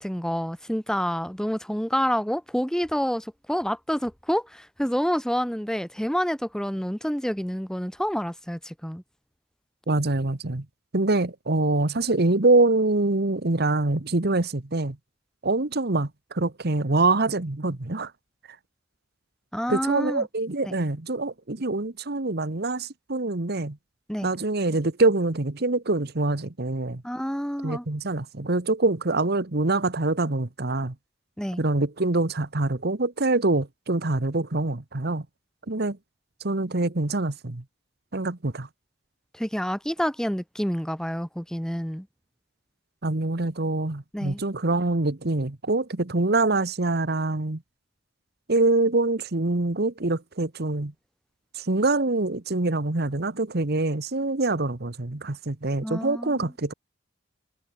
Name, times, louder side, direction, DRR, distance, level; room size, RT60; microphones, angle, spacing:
voice 1, 0.0-9.0 19.5-20.3 24.1-24.3 27.0-27.8 31.4-31.6 39.4-42.1 44.1-44.4 55.8-56.4, equal, 5° left, 2.6 m, -28 dB
voice 2, 9.9-10.6 10.9-15.0 15.4-18.1 19.7-23.8 24.2-27.0 27.6-30.9 31.6-35.2 35.7-36.0 36.4-37.6 38.1-38.7 43.0-47.6 48.5-50.9 51.5-56.7, right 2 dB, 55° right, 1.4 m, -25 dB
head